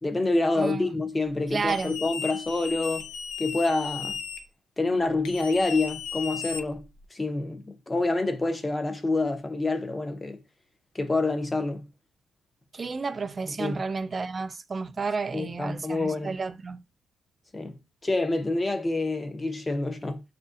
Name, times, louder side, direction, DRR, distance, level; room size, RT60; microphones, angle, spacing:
voice 1, 0.0-3.1 3.4-4.2 4.8-6.8 7.1-10.4 10.9-11.8 13.6-13.8 15.3-16.3 17.5-17.8 18.0-20.2, left 2 dB, 20° left, 0.6 m, -27 dB
voice 2, 0.6-0.9 1.5-2.0 12.7-16.8, right 4 dB, 35° right, 0.3 m, -31 dB
sound 1, 1.7-4.4 5.2-7.0, left 7 dB, 85° left, 0.5 m, -36 dB
7.1 x 2.5 x 2.5 m
cardioid pair, 90°, 0 cm